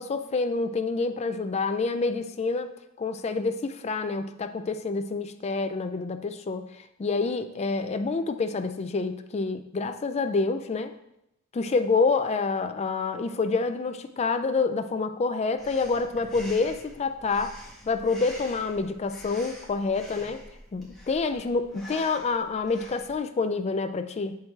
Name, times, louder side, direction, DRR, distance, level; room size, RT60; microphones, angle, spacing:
voice 1, 0.0-2.7 3.0-10.9 11.5-17.6 17.9-20.4 20.7-24.4, left 4 dB, 30° left, 9 dB, 0.3 m, -27 dB
Breathing, 15.6-23.2, equal, ahead, 1.5 m, -46 dB
7.1 x 4.7 x 3.2 m, 0.83 s
head